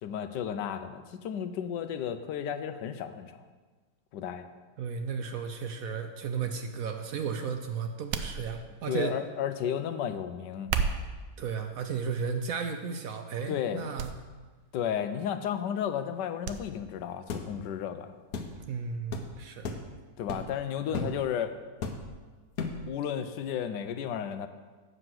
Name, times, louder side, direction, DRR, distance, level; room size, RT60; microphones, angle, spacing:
voice 1, 0.0-3.4 4.1-4.5 8.9-10.8 13.5-13.9 14.7-18.1 20.2-21.5 22.9-24.5, left 9 dB, 80° left, 10 dB, 1.3 m, -33 dB
voice 2, 4.8-9.2 11.4-14.1 18.7-19.8 20.9-21.1, right 6 dB, 65° right, 6 dB, 0.9 m, -34 dB
sound 1, 8.1-8.9 10.5-11.3 12.0-12.4 12.9-13.0 14.0-14.2 14.4-14.5 16.4-16.6 17.0-17.1, right 6 dB, 80° right, 1.3 m, -32 dB
sound 2, 17.3-17.5 18.3-18.5 19.1-19.3 19.6-19.9 20.3-20.5 20.9-21.2 21.8-22.2 22.6-22.9, left 4 dB, 60° left, 1.2 m, -34 dB
7.9 x 6.1 x 7.7 m, 1.4 s
omnidirectional pair, 1.9 m